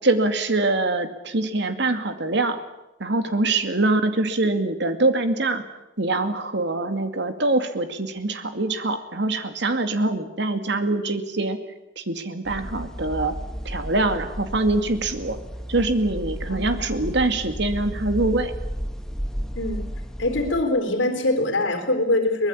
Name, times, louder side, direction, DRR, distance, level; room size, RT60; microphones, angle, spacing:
voice 1, 0.0-2.6 3.0-5.6 6.0-11.6 12.0-13.3 13.6-15.4 15.7-18.5, right 2 dB, 65° right, 8 dB, 2.4 m, -24 dB
sound 1, 12.4-20.6, equal, 5° left, 1.5 m, -33 dB
voice 2, 16.5-16.9 19.6-19.9 20.2-22.5, left 2 dB, 85° left, 5 dB, 3.8 m, -23 dB
23.5 x 20.0 x 8.6 m, 1.0 s
head